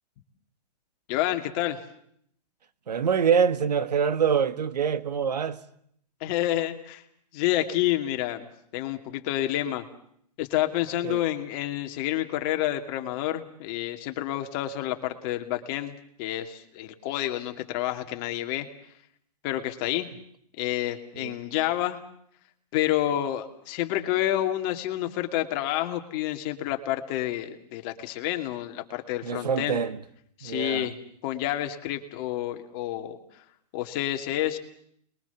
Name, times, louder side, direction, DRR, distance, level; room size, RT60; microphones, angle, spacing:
voice 1, 1.1-1.8 6.2-7.0 7.3-8.5 8.7-9.8 10.4-18.7 19.4-20.1 20.6-22.0 22.7-29.8 30.4-31.0 31.2-33.2 33.7-34.6, left 13 dB, 35° left, 2.5 m, -29 dB
voice 2, 2.9-5.6 11.0-11.2 21.2-21.3 29.2-30.0 30.4-30.9, right 7 dB, 85° right, 1.7 m, -25 dB
29.0 x 22.0 x 7.2 m
hypercardioid pair, 145°, 20 cm